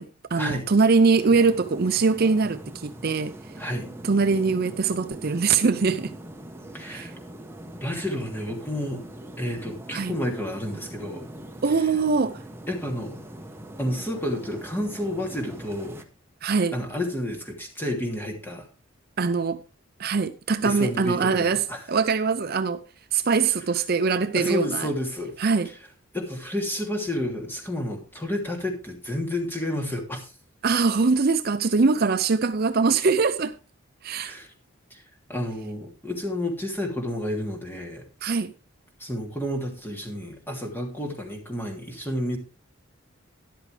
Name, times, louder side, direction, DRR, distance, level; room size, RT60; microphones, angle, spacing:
voice 1, 0.0-3.4 4.0-6.1 6.9-7.1 9.9-10.1 11.6-12.4 16.4-16.8 19.2-19.6 20.0-22.8 23.1-24.9 25.4-25.7 30.6-33.6 34.0-34.4 38.2-38.5, right 4 dB, 45° right, 0.6 m, -22 dB
sound 1, 1.2-16.0, right 1 dB, 10° right, 1.1 m, -42 dB
voice 2, 3.6-3.9 6.7-7.1 7.8-9.0 9.4-11.3 12.7-13.2 13.8-16.0 16.7-18.6 20.6-21.8 24.3-25.3 26.1-30.3 34.2-34.5 34.9-35.0 35.3-38.0 39.0-42.4, left 1 dB, 10° left, 2.9 m, -30 dB
13.0 x 11.0 x 3.3 m
head